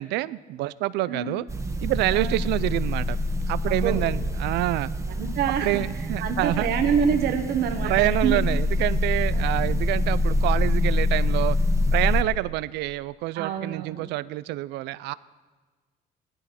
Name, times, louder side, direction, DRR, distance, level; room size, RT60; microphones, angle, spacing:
voice 1, 0.0-1.4 1.8-3.2 3.5-4.9 5.6-6.7 7.8-11.6 11.9-15.1, right 17 dB, 90° right, 18 dB, 0.5 m, -27 dB
voice 2, 1.1-1.4 2.1-2.4 3.7-4.0 5.2-8.4 9.3-9.7 13.3-14.1, right 7 dB, 70° right, 5 dB, 1.5 m, -27 dB
sound 1, 1.5-12.2, left 1 dB, 15° right, 1.3 m, -25 dB
17.0 x 13.0 x 5.9 m, 1.4 s
cardioid pair, 110°, 17 cm